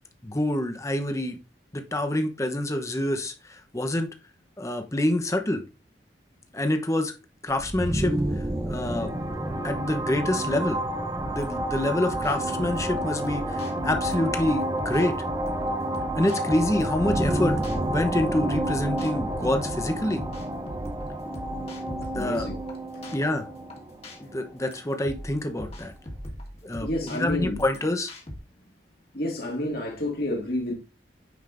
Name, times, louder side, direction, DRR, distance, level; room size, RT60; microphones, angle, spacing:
voice 1, 0.2-1.4 1.7-4.1 4.6-5.6 6.5-7.1 7.4-8.2 8.7-9.1 9.6-10.8 11.3-15.2 16.1-20.2 21.9-22.5 23.1-23.5 24.2-25.9 26.6-28.1, left 1 dB, 15° left, 0.9 m, -27 dB
sound 1, 7.5-25.2, right 1 dB, 20° right, 0.8 m, -30 dB
sound 2, 11.2-28.4, equal, 35° left, 1.9 m, -40 dB
voice 2, 22.1-22.6 26.8-27.6 29.1-30.7, left 1 dB, 55° left, 2.2 m, -29 dB
9.3 x 5.2 x 2.6 m
head